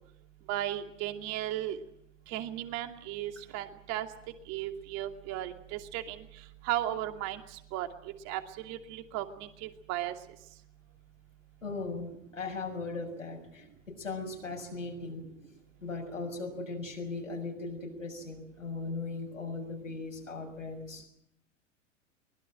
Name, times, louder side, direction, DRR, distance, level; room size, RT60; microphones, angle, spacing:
voice 1, 0.5-1.8 2.3-4.1 4.5-6.3 6.6-7.9 8.2-10.1, right 13 dB, 45° right, 6 dB, 2.6 m, -35 dB
voice 2, 11.6-15.2 15.8-21.1, left 3 dB, 85° left, 3 dB, 6.6 m, -38 dB
23.5 x 21.0 x 7.7 m, 0.73 s
figure-of-eight pair, 90°, 38 cm